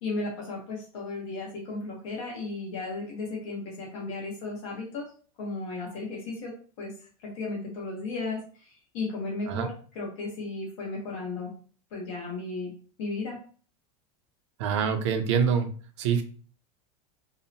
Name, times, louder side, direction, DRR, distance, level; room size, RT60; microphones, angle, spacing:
voice 1, 0.0-5.1 5.4-6.5 6.8-6.9 7.2-11.5 11.9-12.7 13.0-13.4, left 3 dB, 55° left, -2 dB, 0.8 m, -35 dB
voice 2, 14.6-15.7 16.0-16.2, right 7 dB, 55° right, 8 dB, 0.4 m, -25 dB
2.7 x 2.0 x 2.6 m, 0.41 s
supercardioid pair, 180°, 18 cm